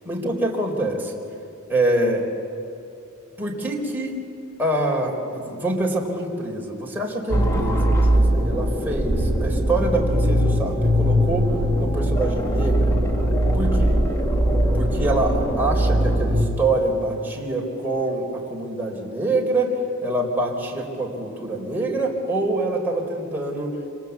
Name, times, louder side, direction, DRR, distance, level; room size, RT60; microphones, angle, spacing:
voice 1, 0.0-1.2 1.7-2.3 3.4-4.2 4.6-13.0 13.5-14.0 14.7-23.7, right 2 dB, 10° right, -2 dB, 3.8 m, -25 dB
sound 1, 7.3-16.4, equal, 15° left, 2.2 m, -20 dB
27.0 x 26.0 x 8.2 m, 2.7 s
head